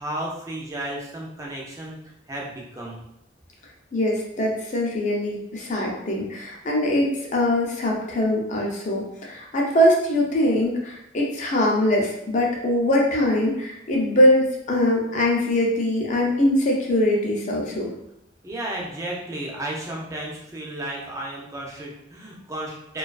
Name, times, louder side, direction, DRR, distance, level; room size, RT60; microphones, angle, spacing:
voice 1, 0.0-2.0 2.3-3.0 18.4-23.0, right 1 dB, 15° right, -3 dB, 0.5 m, -33 dB
voice 2, 3.9-17.9, left 1 dB, 40° left, -1 dB, 0.5 m, -22 dB
2.3 x 2.3 x 2.3 m, 0.79 s
head